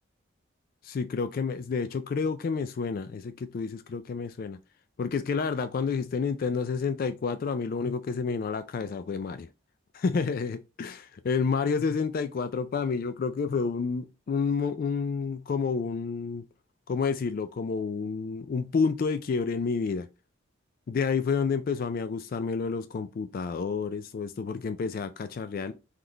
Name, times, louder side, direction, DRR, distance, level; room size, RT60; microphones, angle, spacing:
voice 1, 0.8-4.6 5.0-9.5 9.9-16.4 16.9-20.1 20.9-25.7, left 5 dB, 45° left, 0.3 m, -29 dB
3.9 x 3.2 x 3.8 m
head